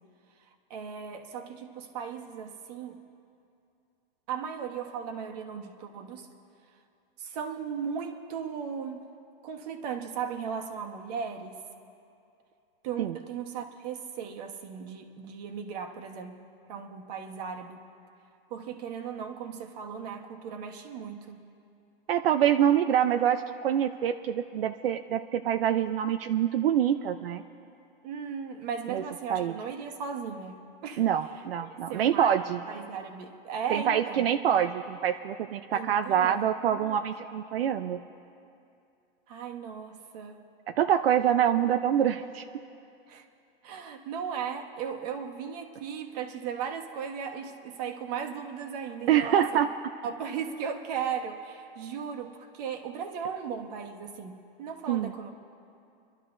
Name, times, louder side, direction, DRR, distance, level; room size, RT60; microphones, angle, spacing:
voice 1, 0.7-3.0 4.3-6.3 7.2-9.0 9.4-11.6 12.8-16.4 16.7-17.8 18.5-21.4 28.0-31.0 31.9-32.4 32.7-34.2 35.7-37.0 39.3-40.5 43.1-43.2 43.6-49.4 50.0-55.3, right 7 dB, 45° right, 4 dB, 1.3 m, -37 dB
voice 2, 22.1-27.4 28.9-29.0 29.3-29.5 31.0-32.6 33.7-38.0 40.8-42.4 49.1-49.7 54.9-55.1, right 9 dB, 80° right, 8 dB, 0.6 m, -25 dB
27.5 x 12.0 x 2.6 m, 2.6 s
supercardioid pair, 160°, 29 cm